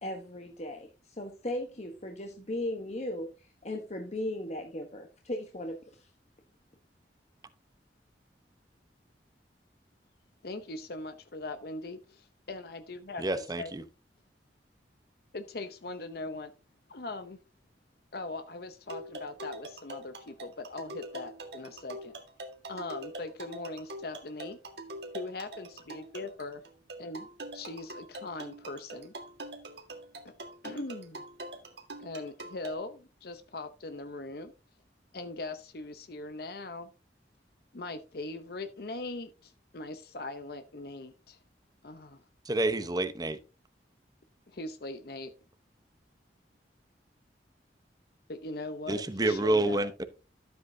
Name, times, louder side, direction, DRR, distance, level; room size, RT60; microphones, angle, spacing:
voice 1, 0.0-6.1, left 1 dB, 40° left, 1.2 m, -37 dB
voice 2, 10.4-13.7 15.3-16.5 16.9-17.4 18.1-22.1 22.7-24.6 25.1-26.6 27.0-27.3 27.5-29.1 30.2-30.3 30.6-31.2 32.0-34.5 35.1-36.9 37.7-41.4 41.8-42.2 44.5-45.3 48.3-49.9, left 2 dB, 60° left, 0.8 m, -40 dB
voice 3, 13.2-13.8 42.4-43.4 48.9-50.0, right 2 dB, 20° right, 0.9 m, -28 dB
sound 1, 18.9-32.7, right 1 dB, 70° right, 1.8 m, -44 dB
12.5 x 8.1 x 2.8 m
head